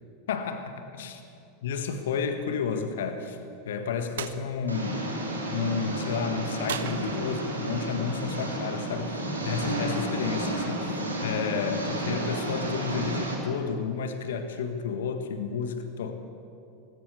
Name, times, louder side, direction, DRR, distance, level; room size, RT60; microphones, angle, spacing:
voice 1, 0.3-1.2 1.6-3.4 3.6-5.0 5.5-16.2, left 6 dB, 60° left, 7 dB, 1.6 m, -31 dB
sound 1, 4.2-4.4 6.7-7.6, right 10 dB, 60° right, 0.7 m, -36 dB
Engine, 4.7-13.3, right 1 dB, 80° right, 3.1 m, -32 dB
19.0 x 16.5 x 8.4 m, 2.6 s
figure-of-eight pair, 85°, 0 cm